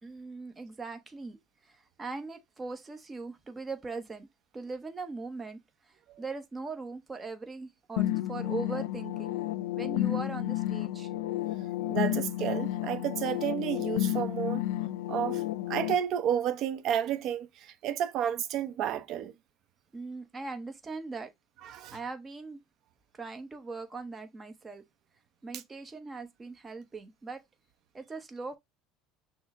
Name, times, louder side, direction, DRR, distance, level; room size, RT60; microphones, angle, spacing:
voice 1, 0.0-4.3 4.5-9.4 9.8-11.1 19.9-21.3 21.9-22.6 23.1-24.8 25.4-27.4 27.9-28.6, right 3 dB, 15° right, 0.8 m, -40 dB
sound 1, 8.0-15.9, left 15 dB, 85° left, 0.4 m, -31 dB
voice 2, 11.9-14.6 15.1-19.3 21.6-22.0 25.5-25.6, right 10 dB, 50° right, 0.6 m, -31 dB
6.1 x 2.1 x 3.6 m
cardioid pair, 135°, 0 cm